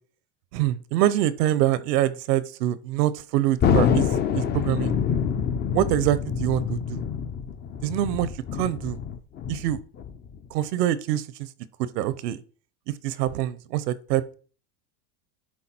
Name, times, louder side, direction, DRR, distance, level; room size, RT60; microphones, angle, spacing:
voice 1, 0.5-4.0 4.3-4.9 5.7-7.0 7.8-9.0 9.5-9.8 10.5-11.2 11.9-12.4 13.0-14.3, right 13 dB, 80° right, 0.9 m, -25 dB
Thunder, 3.6-10.4, left 7 dB, 20° left, 0.5 m, -26 dB
11.0 x 4.0 x 4.4 m
supercardioid pair, 125°, 48 cm